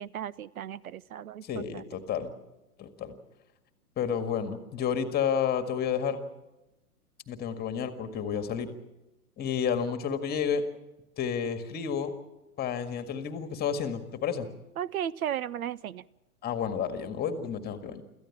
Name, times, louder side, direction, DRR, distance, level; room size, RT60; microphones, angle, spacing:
voice 1, 0.0-1.8 14.8-16.0, right 10 dB, 65° right, 21 dB, 0.6 m, -35 dB
voice 2, 1.4-2.3 2.8-3.2 4.0-6.2 7.3-8.7 9.4-10.6 11.2-12.1 12.6-14.5 16.4-18.0, left 7 dB, 20° left, 8 dB, 1.8 m, -30 dB
26.0 x 14.5 x 7.3 m, 1.0 s
figure-of-eight pair, 110°, 46 cm